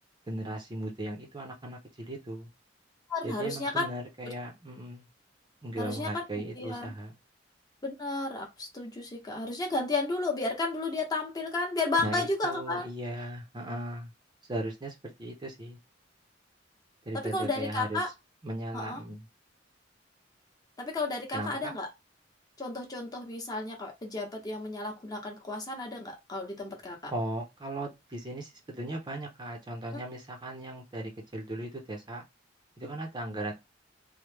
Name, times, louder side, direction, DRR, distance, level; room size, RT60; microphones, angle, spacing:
voice 1, 0.3-2.5 3.2-5.1 5.6-7.1 12.0-14.1 14.5-15.8 17.1-18.0 18.4-19.2 21.3-21.7 27.1-32.2 32.8-33.5, right 1 dB, 25° right, 0.6 m, -37 dB
voice 2, 3.1-3.8 5.8-6.9 7.8-12.9 17.3-18.1 18.7-19.0 20.8-21.9 22.6-27.1 29.9-30.0, left 2 dB, 20° left, 0.8 m, -33 dB
3.1 x 2.1 x 3.3 m
head